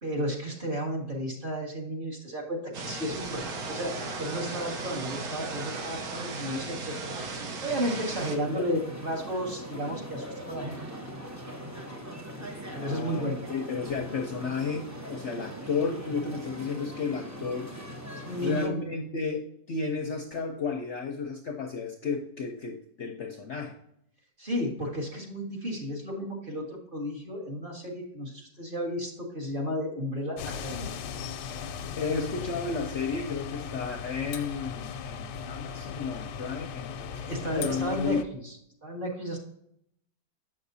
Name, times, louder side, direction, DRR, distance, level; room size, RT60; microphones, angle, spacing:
voice 1, 0.0-7.1 7.6-10.8 12.7-13.5 18.1-18.7 24.4-30.9 37.1-38.2 38.4-38.5 38.8-39.4, equal, 30° right, -2 dB, 1.6 m, -33 dB
sound 1, 2.7-8.4, right 3 dB, 65° right, 1.3 m, -36 dB
sound 2, 8.2-18.7, equal, 15° right, 0.6 m, -41 dB
voice 2, 12.7-17.7 18.4-23.8 31.9-37.1 37.5-38.2, left 5 dB, 55° left, 3 dB, 0.8 m, -33 dB
sound 3, 30.4-38.2, left 7 dB, 90° left, 1.2 m, -38 dB
7.5 x 6.5 x 2.6 m, 0.75 s
omnidirectional pair, 1.8 m